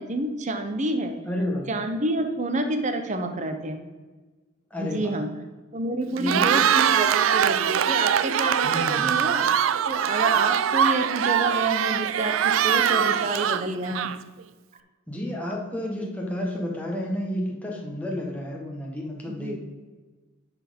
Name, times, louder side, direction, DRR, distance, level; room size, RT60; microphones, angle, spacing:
voice 1, 0.0-1.2 1.7-3.8 4.8-5.3 5.7-9.5 9.8-14.1 19.3-19.6, right 1 dB, 35° right, 7 dB, 0.9 m, -28 dB
voice 2, 1.3-1.7 4.7-5.2 6.1-6.6 8.6-9.2 15.1-19.6, left 1 dB, 5° left, -2 dB, 1.6 m, -31 dB
Cheering, 6.1-14.4, right 9 dB, 70° right, 0.4 m, -22 dB
10.5 x 4.5 x 5.3 m, 1.3 s
head